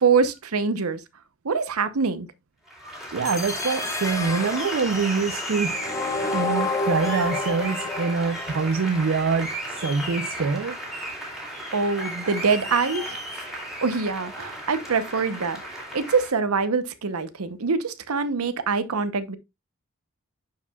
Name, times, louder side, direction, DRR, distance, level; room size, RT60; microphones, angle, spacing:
voice 1, 0.0-1.0 1.4-2.3 11.7-13.2 13.8-19.4, right 5 dB, 90° right, 0.8 m, -24 dB
Applause, 2.7-16.3, right 1 dB, ahead, 2.6 m, -34 dB
voice 2, 3.1-10.8, right 5 dB, 60° right, 0.5 m, -25 dB
sound 1, 3.2-9.3, left 3 dB, 15° left, 0.8 m, -31 dB
11.0 x 4.8 x 2.3 m
head